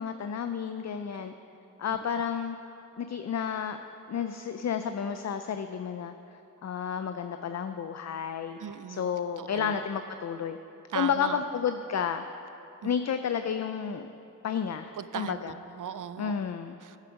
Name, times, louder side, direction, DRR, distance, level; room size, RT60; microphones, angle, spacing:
voice 1, 0.0-1.3 1.8-2.6 3.0-3.8 4.1-6.1 6.6-8.6 8.9-10.6 10.9-12.3 12.8-14.1 14.4-15.5 16.2-16.8, left 7 dB, 50° left, 9 dB, 0.4 m, -31 dB
voice 2, 8.6-9.1 9.4-9.7 10.9-11.4 12.8-12.9 15.0-16.5 16.8-17.0, right 8 dB, 65° right, 14 dB, 0.5 m, -38 dB
9.9 x 7.4 x 6.3 m, 2.9 s
cardioid pair, 40°, 34 cm